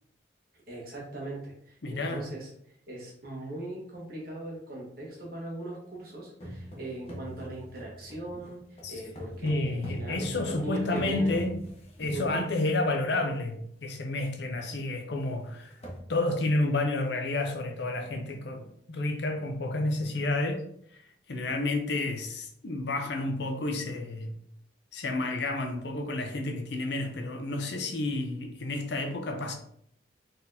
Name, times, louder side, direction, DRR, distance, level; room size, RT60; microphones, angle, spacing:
voice 1, 0.7-11.7 12.1-12.4, right 1 dB, 50° right, -3 dB, 1.4 m, -39 dB
voice 2, 1.8-2.2 8.8-8.9 9.4-11.5 12.0-15.8 16.1-20.6 20.9-24.4 24.9-29.5, left 2 dB, 65° left, 4 dB, 0.6 m, -30 dB
sound 1, 6.4-12.9 13.6-13.7 14.0-14.2 14.6-14.7 15.3-15.4 15.6-16.0, equal, 35° left, 1.0 m, -42 dB
4.2 x 3.8 x 2.7 m, 0.69 s
head